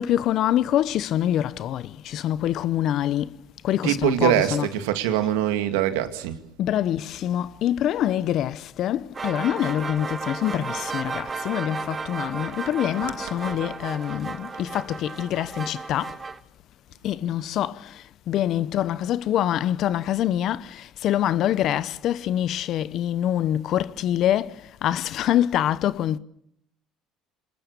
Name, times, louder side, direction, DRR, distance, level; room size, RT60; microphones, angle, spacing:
voice 1, 0.0-3.3 3.6-4.7 6.6-16.1 17.0-17.8 18.3-24.5 24.8-26.2, left 11 dB, 60° left, 0.9 m, -25 dB
voice 2, 3.8-6.4, right 12 dB, 90° right, 2.1 m, -23 dB
sound 1, 9.1-16.4, right 4 dB, 30° right, 1.4 m, -34 dB
27.0 x 20.5 x 6.8 m
supercardioid pair, 85°, 0 cm